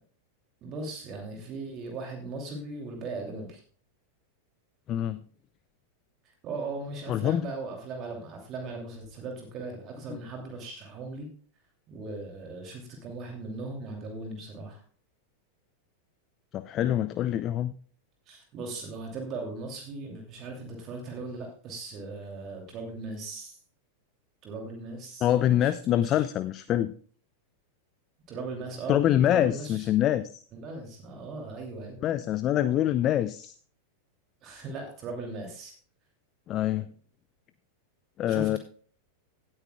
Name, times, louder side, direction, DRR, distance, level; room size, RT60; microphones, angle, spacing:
voice 1, 0.6-3.6 6.4-11.3 11.9-14.8 18.3-23.6 24.4-26.3 28.3-29.9 30.5-32.0 34.4-35.7 38.3-38.6, right 3 dB, 35° right, 2 dB, 2.7 m, -38 dB
voice 2, 4.9-5.2 7.1-7.4 16.5-17.7 25.2-26.9 28.9-30.2 32.0-33.5 36.5-36.9 38.2-38.6, left 11 dB, 35° left, 14 dB, 0.5 m, -25 dB
18.0 x 8.9 x 2.3 m, 0.43 s
figure-of-eight pair, 90°, 0 cm